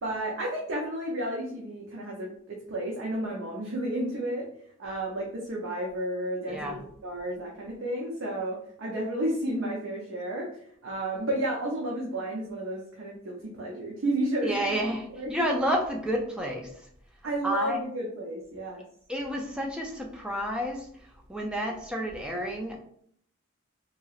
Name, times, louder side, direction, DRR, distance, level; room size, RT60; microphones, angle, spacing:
voice 1, 0.0-4.5 4.8-10.5 10.8-14.8 15.1-15.3 17.2-18.8, right 1 dB, 75° right, -3 dB, 0.6 m, -32 dB
voice 2, 14.4-16.7 17.4-17.8 19.1-20.9 21.3-22.8, equal, 5° right, 0 dB, 0.3 m, -30 dB
2.9 x 2.8 x 2.4 m, 0.65 s
head